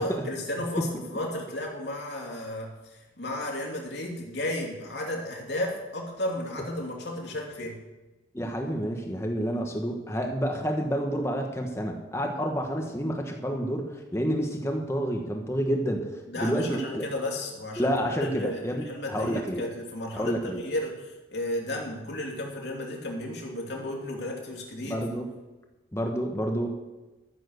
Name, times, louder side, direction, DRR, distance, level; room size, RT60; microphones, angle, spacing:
voice 1, 0.0-7.8 16.3-25.0, left 1 dB, 70° left, 0 dB, 2.8 m, -33 dB
voice 2, 8.3-17.1 17.8-19.6 20.1-20.6 24.8-25.3 25.9-26.7, equal, 15° left, 2 dB, 1.2 m, -29 dB
13.5 x 7.6 x 6.5 m, 1.1 s
head